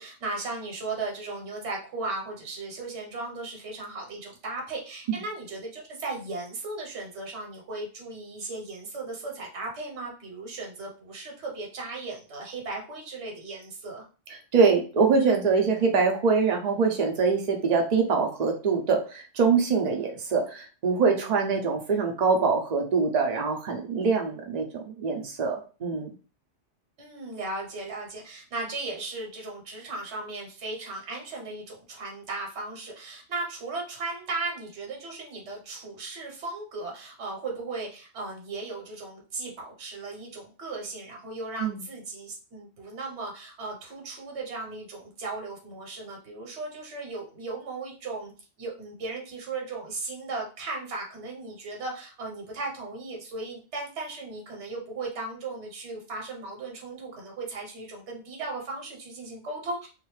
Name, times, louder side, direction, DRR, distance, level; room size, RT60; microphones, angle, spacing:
voice 1, 0.0-14.0 27.0-48.3 48.6-59.9, right 3 dB, 65° right, 0 dB, 1.2 m, -36 dB
voice 2, 14.5-26.1 41.6-41.8, right 5 dB, 45° right, 2 dB, 0.7 m, -24 dB
2.6 x 2.4 x 3.1 m, 0.35 s
omnidirectional pair, 1.3 m